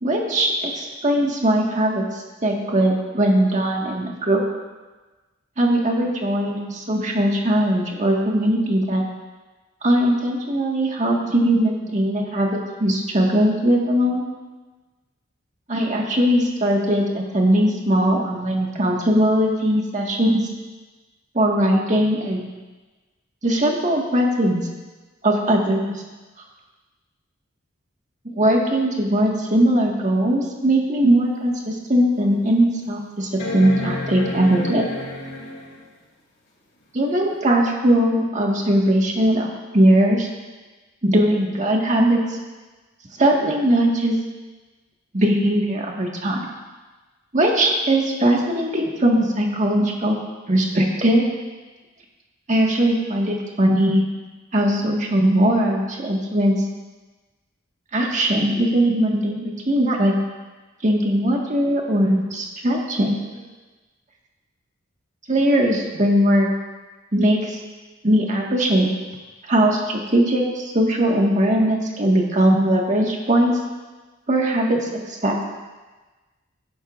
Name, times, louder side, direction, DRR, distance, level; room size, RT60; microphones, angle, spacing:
voice 1, 0.0-4.4 5.6-9.0 9.8-14.2 15.7-20.4 21.3-22.5 23.4-24.7 25.2-26.0 28.2-34.9 36.9-39.5 39.7-40.3 41.0-42.4 43.2-44.2 45.1-46.4 47.3-50.2 50.5-51.2 52.5-54.0 54.5-56.6 57.9-60.1 60.8-63.4 65.3-66.5 67.1-67.6 68.0-68.9 69.4-73.6 74.3-75.3, right 1 dB, 40° right, -1 dB, 1.7 m, -20 dB
sound 1, 31.2-31.3 31.9-32.0 33.4-35.9 37.6-37.7, left 1 dB, 60° left, 2.6 m, -30 dB
16.5 x 11.0 x 2.5 m, 1.2 s
head